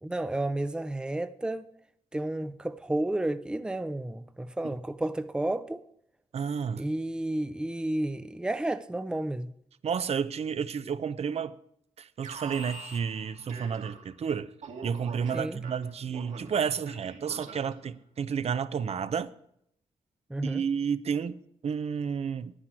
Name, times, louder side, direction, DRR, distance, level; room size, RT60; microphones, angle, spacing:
voice 1, 0.0-1.6 2.1-5.8 6.8-9.5 15.3-15.6 20.3-20.6, right 1 dB, 5° right, 0.6 m, -31 dB
voice 2, 6.3-6.8 9.8-11.6 12.0-14.5 14.8-19.3 20.4-22.5, right 7 dB, 60° right, 0.7 m, -31 dB
Alarm, 12.2-14.2 14.6-17.9, right 4 dB, 80° right, 2.3 m, -44 dB
9.9 x 9.8 x 7.7 m
cardioid pair, 90°, 12 cm